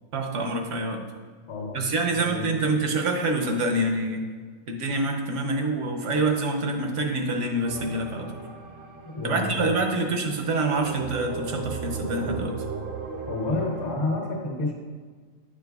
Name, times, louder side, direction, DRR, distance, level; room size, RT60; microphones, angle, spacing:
voice 1, 0.1-1.0 1.7-4.2 4.7-8.3 9.2-12.5, right 2 dB, 70° right, 3 dB, 1.1 m, -26 dB
voice 2, 1.5-2.8 9.1-9.8 13.3-14.7, left 2 dB, 65° left, -1 dB, 1.5 m, -30 dB
sound 1, 7.6-10.1 10.7-14.0, right 5 dB, 50° right, 0.7 m, -36 dB
9.4 x 4.9 x 2.3 m, 1.5 s
omnidirectional pair, 1.4 m